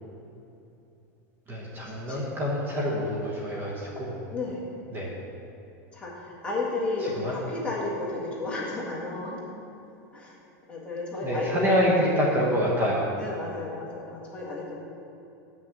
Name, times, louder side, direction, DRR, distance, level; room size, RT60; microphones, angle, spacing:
voice 1, 1.5-4.2 4.9-5.1 7.0-7.4 11.2-13.1, equal, 20° right, -4 dB, 1.1 m, -26 dB
voice 2, 4.3-4.6 5.9-9.4 10.1-10.4 10.7-11.8 13.2-14.8, left 2 dB, 10° left, -5 dB, 1.7 m, -32 dB
6.3 x 6.2 x 7.4 m, 2.8 s
supercardioid pair, 155°, 9 cm